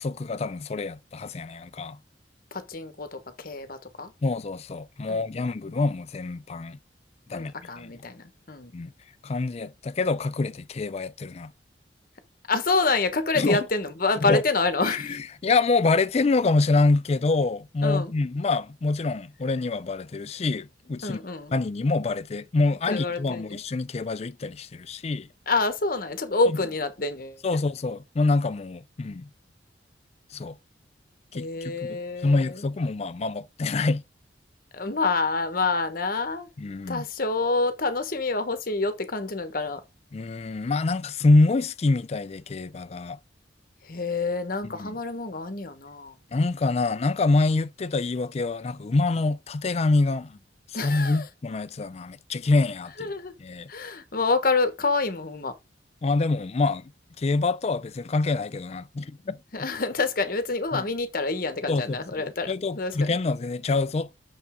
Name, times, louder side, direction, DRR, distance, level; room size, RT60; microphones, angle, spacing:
voice 1, 0.0-2.0 4.2-6.8 7.3-7.9 8.7-8.9 9.2-11.5 13.4-13.6 14.3-14.4 14.8-21.2 21.5-25.3 26.5-26.6 27.4-29.3 30.3-30.6 31.3-34.0 36.6-37.0 40.1-43.2 44.6-45.0 46.3-50.4 50.8-53.1 53.4-53.7 56.0-56.9 57.2-59.4 60.7-60.8 61.7-64.1, left 3 dB, 35° left, 0.4 m, -26 dB
voice 2, 2.5-4.1 5.1-5.5 7.3-8.7 12.5-15.2 17.8-18.1 21.0-21.5 22.9-23.6 25.5-27.6 31.3-32.6 34.7-36.5 36.9-39.8 43.8-46.2 50.7-51.3 53.0-53.3 53.7-55.5 59.5-63.2, left 3 dB, 55° left, 1.2 m, -27 dB
6.6 x 5.4 x 3.6 m
head